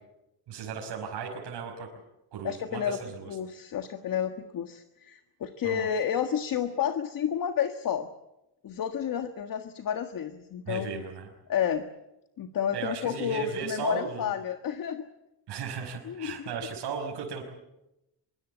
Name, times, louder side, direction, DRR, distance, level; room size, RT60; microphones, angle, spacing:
voice 1, 0.5-1.9 2.3-3.3 5.6-5.9 10.7-11.3 12.7-14.3 15.5-17.4, right 5 dB, 75° right, 0 dB, 5.5 m, -36 dB
voice 2, 2.4-3.0 3.3-8.1 8.6-11.0 11.5-11.9 12.4-15.0 16.0-16.5, left 8 dB, 55° left, 7 dB, 1.6 m, -30 dB
24.5 x 23.5 x 8.2 m, 0.92 s
cardioid pair, 140°, 41 cm